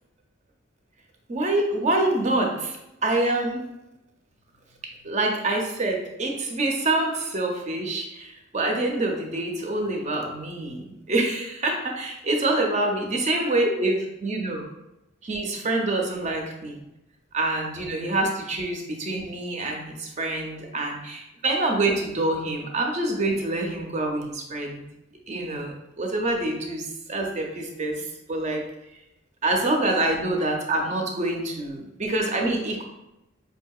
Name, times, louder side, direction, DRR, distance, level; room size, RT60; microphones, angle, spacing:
voice 1, 1.3-3.6 5.0-14.7 15.2-16.8 17.3-24.8 25.3-28.6 29.4-32.8, right 2 dB, 35° right, 1 dB, 0.5 m, -26 dB
5.0 x 2.7 x 2.3 m, 0.91 s
head